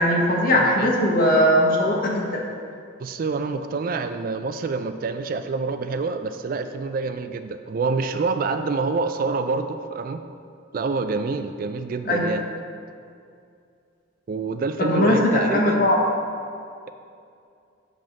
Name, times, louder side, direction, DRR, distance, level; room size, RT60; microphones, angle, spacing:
voice 1, 0.0-2.4 12.1-12.3 14.8-16.0, left 1 dB, 45° left, -2 dB, 1.2 m, -19 dB
voice 2, 0.6-0.9 3.0-10.2 10.7-12.4 14.3-15.9, right 4 dB, 45° right, 9 dB, 0.3 m, -27 dB
7.6 x 3.6 x 6.4 m, 2.4 s
head